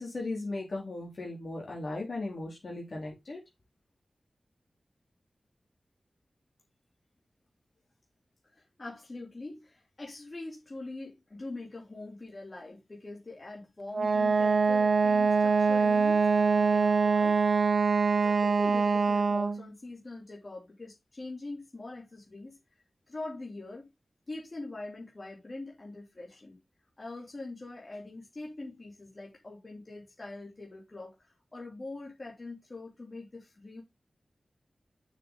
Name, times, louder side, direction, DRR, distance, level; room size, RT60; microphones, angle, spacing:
voice 1, 0.0-3.4, left 2 dB, 60° left, 3.6 m, -37 dB
voice 2, 8.5-17.4 17.9-22.6 23.1-23.9 24.3-26.6 27.0-33.8, left 2 dB, 35° left, 2.9 m, -43 dB
Wind instrument woodwind instrument, 13.9-19.6, right 4 dB, 75° right, 0.9 m, -24 dB
6.7 x 6.6 x 3.9 m
wide cardioid pair, 95°, 0 cm